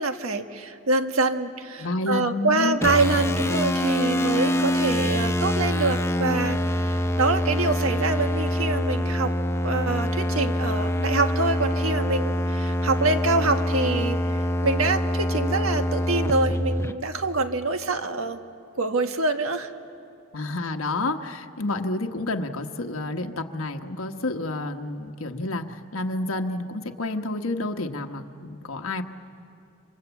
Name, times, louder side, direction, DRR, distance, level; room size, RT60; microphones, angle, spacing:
voice 1, 0.0-6.6 6.9-9.3 9.6-14.2 14.6-18.4 18.7-19.7, right 3 dB, 85° right, 7 dB, 1.5 m, -25 dB
voice 2, 1.8-2.8 3.1-3.2 20.3-29.0, left 2 dB, 85° left, 4 dB, 1.2 m, -29 dB
sound 1, 2.8-16.9, equal, 10° left, 0.6 m, -25 dB
27.5 x 26.0 x 8.2 m, 2.5 s
head